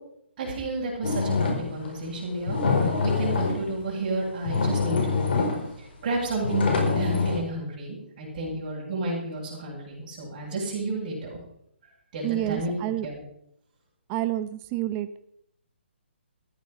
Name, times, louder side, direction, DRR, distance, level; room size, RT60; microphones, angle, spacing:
voice 1, 0.4-2.6 3.0-5.3 5.8-11.4 12.1-12.7 13.0-13.2, right 2 dB, 40° right, -5 dB, 7.7 m, -31 dB
sound 1, 1.0-1.9 2.4-3.7 4.2-4.3 4.5-5.7 6.4-7.4, left 4 dB, 55° left, 4.6 m, -25 dB
voice 2, 12.2-13.1 14.1-15.2, right 14 dB, 25° right, 12 dB, 1.0 m, -29 dB
14.5 x 10.5 x 5.8 m, 0.71 s
figure-of-eight pair, 135°, 6 cm